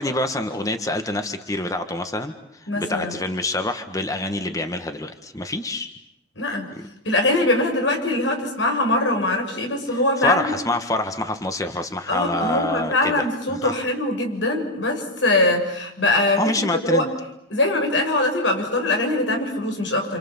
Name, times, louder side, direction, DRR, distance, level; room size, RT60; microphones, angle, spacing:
voice 1, 0.0-5.9 6.8-6.9 10.2-13.7 16.4-17.1, left 2 dB, 20° left, 7 dB, 1.6 m, -26 dB
voice 2, 2.7-3.1 6.4-6.7 7.0-10.5 12.1-17.1 17.5-20.2, left 2 dB, 90° left, 3 dB, 6.6 m, -22 dB
28.5 x 28.0 x 7.3 m, 0.81 s
head